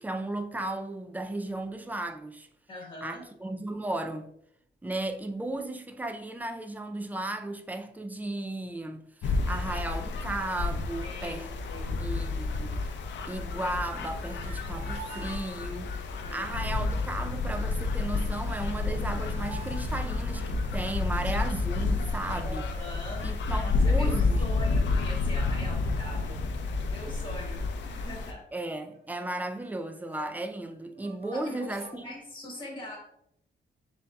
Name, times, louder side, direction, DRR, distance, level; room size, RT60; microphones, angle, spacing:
voice 1, 0.0-2.5 3.0-4.3 4.8-11.5 12.0-12.8 13.3-16.0 16.3-22.6 23.2-24.4 28.5-32.1, right 2 dB, 10° right, 0.3 m, -35 dB
voice 2, 2.7-3.2 11.0-11.9 16.2-16.5 22.4-23.3 23.6-26.4 26.9-28.4 31.3-33.0, left 1 dB, 25° left, 1.4 m, -42 dB
sound 1, 9.2-28.3, left 3 dB, 70° left, 0.5 m, -30 dB
sound 2, 14.1-16.1 18.3-18.4 18.6-20.8 22.2-23.0 23.6-23.7 23.9-25.0 25.4-25.7 26.3-26.9 27.2-27.4 27.6-30.5 30.9-32.0, right 4 dB, 35° right, 0.7 m, -50 dB
7.1 x 2.7 x 2.2 m
cardioid pair, 145°, 19 cm